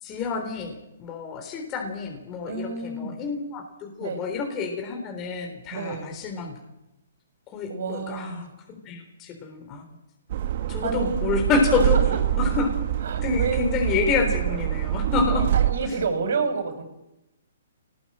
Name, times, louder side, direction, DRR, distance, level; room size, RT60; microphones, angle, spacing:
voice 1, 0.0-6.6 7.5-9.8 10.7-12.0 12.4-12.7 13.2-15.5 15.8-16.0, left 4 dB, 20° left, 2 dB, 3.8 m, -28 dB
voice 2, 2.5-3.2 4.0-4.2 5.7-6.1 7.7-8.5 10.8-11.2 11.6-12.2 13.0-13.6 15.4-16.8, right 4 dB, 65° right, 8 dB, 6.3 m, -29 dB
sound 1, 10.3-15.7, right 11 dB, 50° right, 1.9 m, -25 dB
25.0 x 19.5 x 8.8 m, 0.93 s
hypercardioid pair, 155°, 0 cm